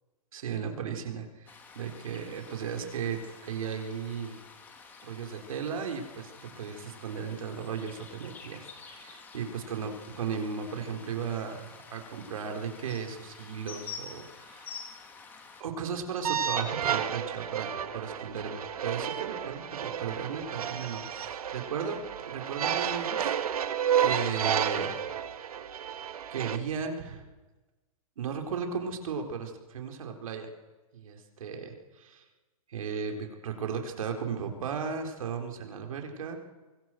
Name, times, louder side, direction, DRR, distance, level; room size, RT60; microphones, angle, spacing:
voice 1, 0.3-4.4 5.0-14.7 15.6-23.4 23.8-24.9 25.2-25.3 26.3-27.2 28.2-30.5 30.9-32.3 32.7-36.4, right 6 dB, 70° right, 4 dB, 4.1 m, -36 dB
sound 1, 1.5-15.6, left 5 dB, 10° left, 1.8 m, -48 dB
sound 2, 16.2-26.6, right 9 dB, 90° right, 1.8 m, -31 dB
23.5 x 21.5 x 7.8 m, 1.2 s
hypercardioid pair, 175°, 18 cm